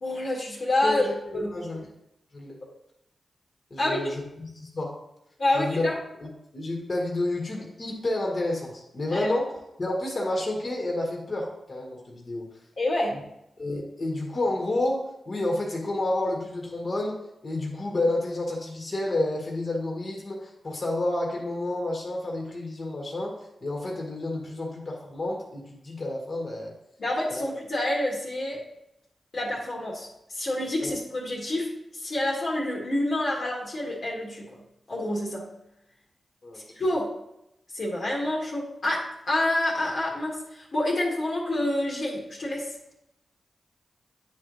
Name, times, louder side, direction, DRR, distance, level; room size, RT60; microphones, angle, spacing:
voice 1, 0.0-1.0 1.3-1.5 3.8-4.0 5.4-6.0 9.1-9.3 12.8-13.3 27.0-28.6 29.3-34.6 34.9-35.5 36.7-37.1 37.7-42.7, left 1 dB, 70° left, -4 dB, 1.7 m, -28 dB
voice 2, 0.8-1.8 2.3-2.6 3.7-5.0 5.5-5.9 6.2-6.3 6.5-9.5 9.8-12.5 13.6-15.0 15.3-23.3 23.6-26.7 27.3-27.4 30.8-30.9 36.4-36.6, left 2 dB, 50° left, -2 dB, 1.7 m, -30 dB
9.5 x 3.2 x 3.9 m, 0.84 s
cardioid pair, 45°, 0 cm